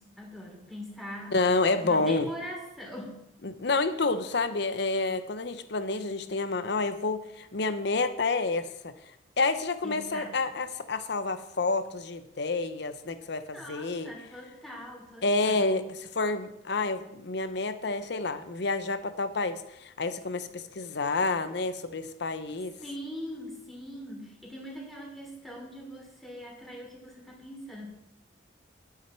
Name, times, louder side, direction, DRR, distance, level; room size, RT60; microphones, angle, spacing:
voice 1, 0.0-1.3 1.8-3.2 9.8-10.3 13.5-15.9 22.8-27.9, equal, ahead, -2 dB, 3.0 m, -42 dB
voice 2, 1.3-2.3 3.4-8.9 9.4-14.1 15.2-15.8 16.2-22.7, left 3 dB, 65° left, 11 dB, 0.8 m, -29 dB
11.0 x 8.5 x 4.5 m, 0.85 s
head